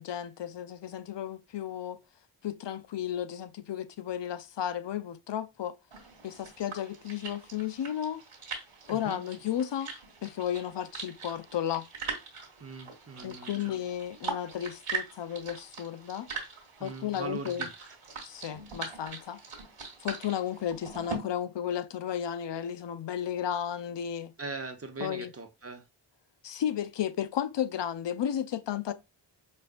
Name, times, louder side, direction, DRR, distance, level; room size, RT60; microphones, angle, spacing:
voice 1, 0.0-2.0 2.4-5.7 6.2-8.2 8.9-10.0 10.2-11.9 13.2-16.3 16.8-17.7 18.2-19.4 20.0-24.3 25.0-25.3 26.4-28.9, left 10 dB, 60° left, 0.5 m, -33 dB
sound 1, 5.9-21.2, right 5 dB, 90° right, 1.5 m, -41 dB
voice 2, 8.9-9.2 12.6-13.8 16.8-18.0 24.4-25.9, right 4 dB, 30° right, 0.9 m, -41 dB
5.3 x 2.5 x 2.3 m
cardioid pair, 50°, 49 cm